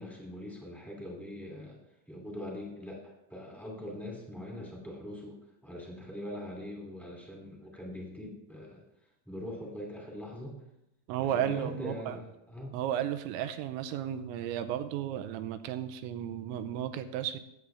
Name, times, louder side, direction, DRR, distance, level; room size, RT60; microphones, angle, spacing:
voice 1, 0.0-1.8 2.1-8.8 9.2-10.6 11.2-12.8, left 1 dB, ahead, -1 dB, 1.2 m, -42 dB
voice 2, 11.1-12.2 12.7-17.4, right 10 dB, 85° right, 9 dB, 2.9 m, -34 dB
18.5 x 8.4 x 3.4 m, 0.85 s
omnidirectional pair, 5.5 m